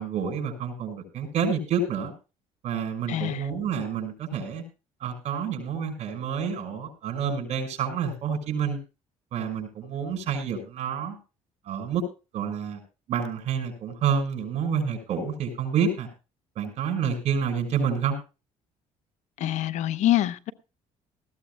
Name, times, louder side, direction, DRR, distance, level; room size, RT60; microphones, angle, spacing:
voice 1, 0.0-2.1 2.6-4.6 5.0-8.8 9.3-11.2 11.7-12.0 12.3-12.8 13.1-16.1 16.6-18.2, right 6 dB, 60° right, 6.0 m, -28 dB
voice 2, 3.1-3.4 19.4-20.5, left 13 dB, 70° left, 0.8 m, -25 dB
19.5 x 15.0 x 2.2 m
cardioid pair, 110°, 13 cm